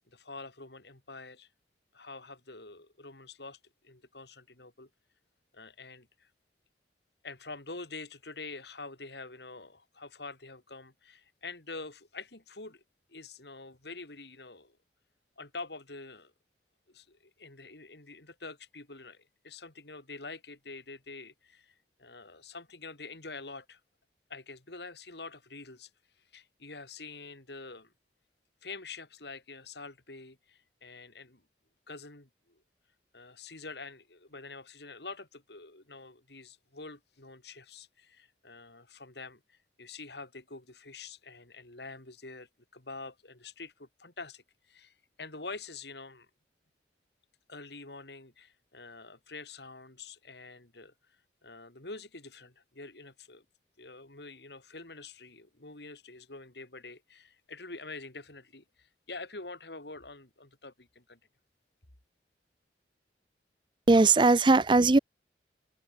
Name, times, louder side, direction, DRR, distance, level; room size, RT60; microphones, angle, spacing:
voice 1, 0.1-1.5 1.9-4.9 5.5-6.3 7.2-12.8 13.1-14.8 15.4-16.3 16.9-23.8 24.3-25.9 26.3-27.9 28.6-31.4 31.9-32.6 33.1-46.3 47.5-50.9 51.4-53.4 53.8-61.2, left 3 dB, 65° left, 3.4 m, -46 dB
voice 2, 63.9-65.0, right 3 dB, 25° right, 0.5 m, -20 dB
head